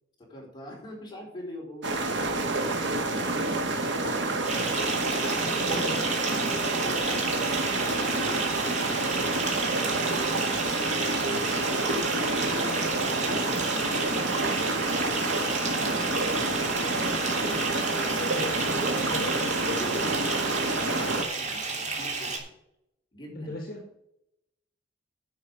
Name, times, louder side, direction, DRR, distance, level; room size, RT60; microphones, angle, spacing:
voice 1, 0.2-2.9 6.7-9.5 9.9-10.5 12.0-14.4 19.8-22.5 23.1-23.5, left 1 dB, 25° left, -1 dB, 4.7 m, -44 dB
sound 1, 1.8-21.2, right 2 dB, 65° right, 2.1 m, -28 dB
Bathtub (filling or washing) / Fill (with liquid), 4.4-22.4, right 4 dB, 40° right, 2.9 m, -32 dB
voice 2, 5.6-6.0 12.0-12.2 18.2-20.1 23.4-23.8, left 1 dB, 50° left, 2 dB, 1.8 m, -38 dB
10.5 x 6.4 x 6.8 m, 0.81 s
head